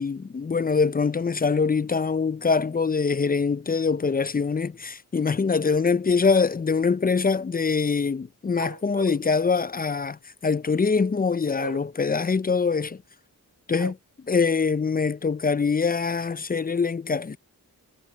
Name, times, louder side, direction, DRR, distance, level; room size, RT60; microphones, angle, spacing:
voice 1, 0.0-13.0 13.7-14.0 14.3-17.4, left 5 dB, 25° left, 0.4 m, -24 dB
sound 1, 8.6-9.2 11.6-11.8 13.8-13.9, right 4 dB, 55° right, 2.5 m, -36 dB
cardioid pair, 50°, 37 cm